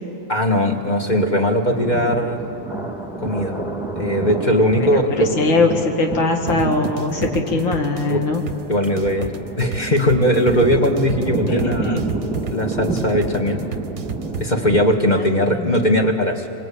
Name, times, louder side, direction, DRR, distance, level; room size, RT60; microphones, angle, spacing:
voice 1, 0.3-2.4 3.2-3.6 4.0-5.3 8.1-8.2 8.7-12.1 12.5-13.6 14.4-16.5, equal, 25° left, 2 dB, 1.8 m, -19 dB
Thunder, 1.7-14.8, right 3 dB, ahead, 2.2 m, -29 dB
voice 2, 5.2-8.4 9.1-9.2 11.5-12.4 15.1-15.7, left 3 dB, 90° left, 2 dB, 2.8 m, -22 dB
sound 1, 6.5-14.4, right 8 dB, 45° right, 1.2 m, -31 dB
26.0 x 25.0 x 8.7 m, 2.7 s
omnidirectional pair, 2.0 m